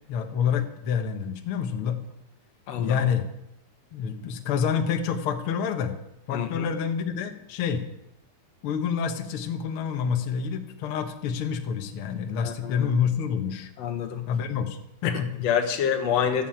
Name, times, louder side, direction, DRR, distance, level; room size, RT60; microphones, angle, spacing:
voice 1, 0.1-2.0 2.8-3.3 3.9-6.0 6.3-7.8 8.6-13.7 14.3-15.5, left 7 dB, 75° left, 5 dB, 1.2 m, -28 dB
voice 2, 2.7-3.0 6.3-6.7 12.4-12.9 13.8-14.3 15.0-16.5, left 8 dB, 60° left, 6 dB, 1.8 m, -27 dB
12.5 x 7.7 x 8.7 m, 0.82 s
omnidirectional pair, 4.4 m